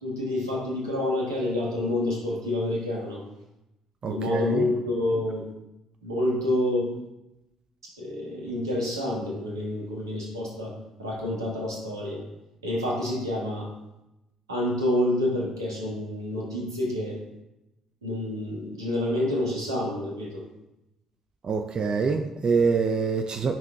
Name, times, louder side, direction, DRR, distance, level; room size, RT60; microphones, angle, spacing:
voice 1, 0.0-3.2 4.1-5.5 6.0-7.0 7.8-12.3 12.6-13.7 14.5-17.2 18.0-20.4, left 1 dB, 85° right, -3 dB, 1.5 m, -28 dB
voice 2, 4.0-4.7 21.4-23.6, right 5 dB, 40° right, 5 dB, 0.6 m, -25 dB
11.5 x 5.8 x 2.3 m, 0.94 s
figure-of-eight pair, 45°, 2 cm